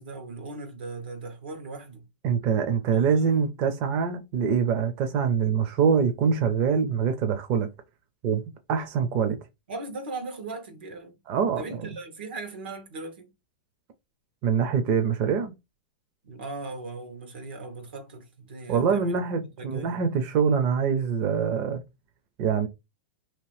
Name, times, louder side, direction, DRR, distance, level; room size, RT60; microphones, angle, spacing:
voice 1, 0.0-2.1 2.9-3.4 9.7-11.2 11.6-13.3 16.2-20.0, right 3 dB, 85° right, 1.3 m, -38 dB
voice 2, 2.2-7.7 8.2-8.4 8.7-9.4 11.3-11.9 14.4-15.5 18.7-21.8 22.4-22.7, right 6 dB, 35° right, 0.6 m, -24 dB
2.9 x 2.6 x 3.1 m
supercardioid pair, 155°, 5 cm